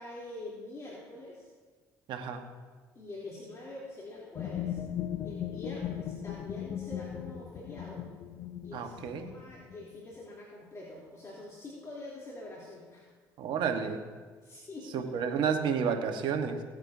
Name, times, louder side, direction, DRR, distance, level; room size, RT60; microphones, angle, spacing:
voice 1, 0.0-1.5 3.0-4.8 5.2-8.0 8.6-13.1 14.4-15.1, left 2 dB, 35° left, -7 dB, 3.4 m, -45 dB
voice 2, 2.1-2.4 8.7-9.3 13.4-14.0 14.9-16.6, right 6 dB, 65° right, 5 dB, 1.3 m, -31 dB
sound 1, 4.4-10.0, left 10 dB, 60° left, 0.7 m, -38 dB
18.0 x 9.6 x 2.8 m, 1.5 s
hypercardioid pair, 60°, 8 cm